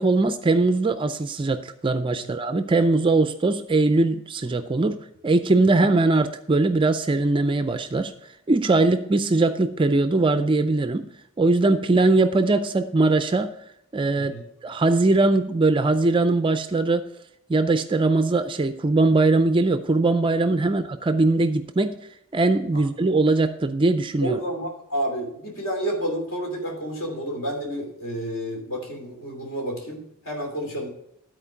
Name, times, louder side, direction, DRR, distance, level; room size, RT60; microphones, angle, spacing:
voice 1, 0.0-8.1 8.5-11.1 11.4-13.5 13.9-14.3 14.6-17.1 17.5-22.0 22.3-24.4, right 2 dB, 20° right, 10 dB, 0.3 m, -21 dB
voice 2, 24.2-30.9, right 1 dB, 60° left, 0 dB, 2.9 m, -30 dB
12.5 x 4.4 x 5.8 m, 0.74 s
head